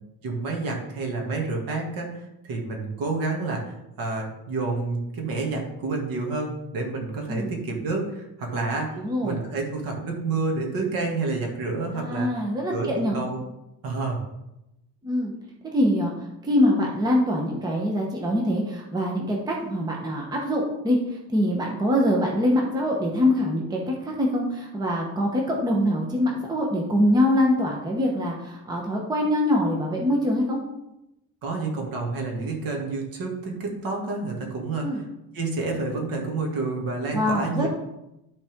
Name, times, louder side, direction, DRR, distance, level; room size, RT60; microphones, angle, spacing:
voice 1, 0.2-12.3 12.7-13.4 13.8-14.2 31.4-35.0 35.3-37.7, right 3 dB, 60° right, 0 dB, 2.2 m, -29 dB
voice 2, 9.0-9.4 11.9-13.2 15.0-15.3 15.7-16.1 16.4-30.6 34.8-35.0 37.1-37.7, left 1 dB, 10° right, -1 dB, 0.9 m, -24 dB
12.5 x 4.3 x 3.6 m, 0.90 s
cardioid pair, 170°, 38 cm